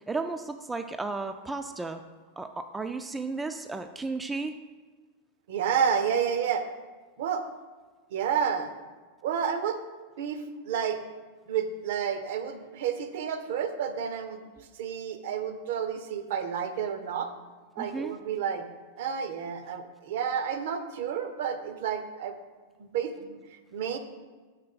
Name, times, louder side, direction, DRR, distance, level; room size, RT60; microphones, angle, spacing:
voice 1, 0.1-2.0 2.4-4.6 17.8-18.1, right 3 dB, 10° right, 7 dB, 0.3 m, -34 dB
voice 2, 5.5-6.7 7.2-7.5 8.1-8.7 9.2-9.8 10.2-11.0 11.5-14.5 14.8-17.3 17.8-18.7 19.0-22.4 22.8-23.4 23.7-24.0, right 7 dB, 55° right, 8 dB, 0.6 m, -30 dB
6.6 x 3.6 x 5.4 m, 1.4 s
figure-of-eight pair, 90°, 0 cm